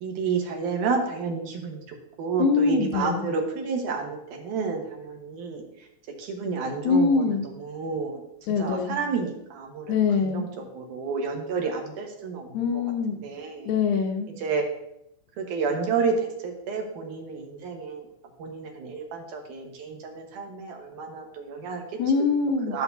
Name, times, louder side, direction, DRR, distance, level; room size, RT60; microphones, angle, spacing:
voice 1, 0.0-5.6 6.2-8.2 8.6-12.8 13.1-13.7 14.4-14.7 15.4-18.1 18.4-21.8 22.7-22.8, right 5 dB, 80° right, 2 dB, 2.8 m, -30 dB
voice 2, 2.4-3.2 6.9-7.5 8.5-9.0 9.9-10.5 12.5-13.2 13.7-14.3 22.0-22.8, left 5 dB, 75° left, 4 dB, 2.1 m, -23 dB
13.5 x 6.7 x 2.7 m, 0.81 s
omnidirectional pair, 3.5 m